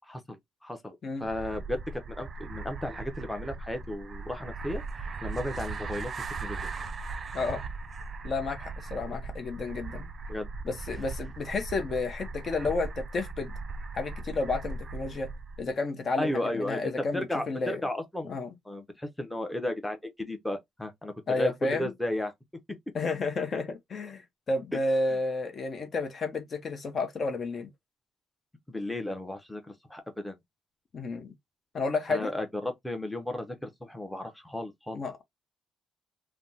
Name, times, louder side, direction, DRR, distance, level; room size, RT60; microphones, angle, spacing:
voice 1, 0.3-4.8 5.2-6.1 6.4-6.6 10.3-10.5 16.2-18.3 18.7-22.3 28.7-30.3 32.1-35.0, left 1 dB, 10° left, 0.7 m, -34 dB
sound 1, 1.2-15.7, right 3 dB, 45° right, 0.5 m, -38 dB
voice 2, 8.2-10.1 10.6-13.5 13.9-15.3 15.6-17.8 18.2-18.5 21.3-21.9 22.9-27.7 30.9-31.3 31.7-32.3 34.9-35.2, left 3 dB, 50° left, 0.7 m, -31 dB
3.3 x 2.0 x 2.7 m
cardioid pair, 90°, 0 cm